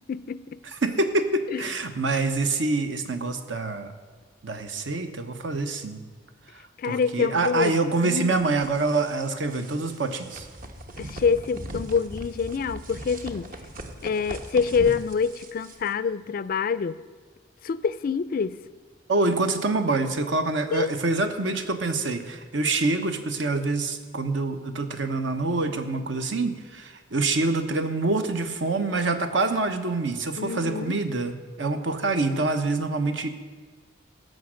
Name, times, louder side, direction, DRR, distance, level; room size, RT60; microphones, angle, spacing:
voice 1, 0.1-0.6 1.5-1.6 6.8-7.7 8.0-8.6 11.0-13.5 14.0-17.0 17.6-18.6 20.7-20.9 30.4-31.0, left 5 dB, 50° left, 0.3 m, -26 dB
voice 2, 0.8-3.9 4.4-6.0 6.8-10.5 19.1-33.3, right 3 dB, 70° right, 1.0 m, -26 dB
sound 1, 8.2-15.9, right 1 dB, 45° right, 1.0 m, -40 dB
16.0 x 6.5 x 6.3 m
head